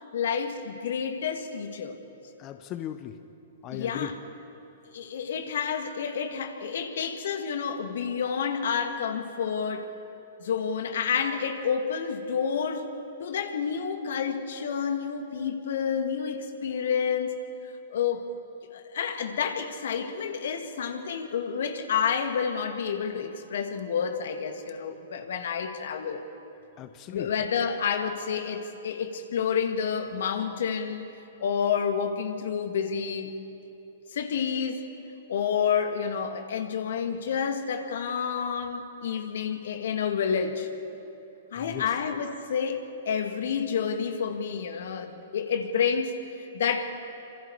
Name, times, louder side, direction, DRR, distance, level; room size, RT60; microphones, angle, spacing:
voice 1, 0.1-2.0 3.7-4.2 4.9-9.9 10.4-12.9 13.2-18.4 18.7-26.2 27.1-31.1 31.4-33.3 34.1-34.8 35.3-40.7 41.5-46.8, left 7 dB, 65° left, 6 dB, 2.1 m, -29 dB
voice 2, 2.4-3.1 3.6-4.1 26.8-27.3 41.6-41.9, left 12 dB, 35° left, 9 dB, 1.1 m, -37 dB
27.5 x 26.5 x 4.9 m, 2.8 s
hypercardioid pair, 115°, 0 cm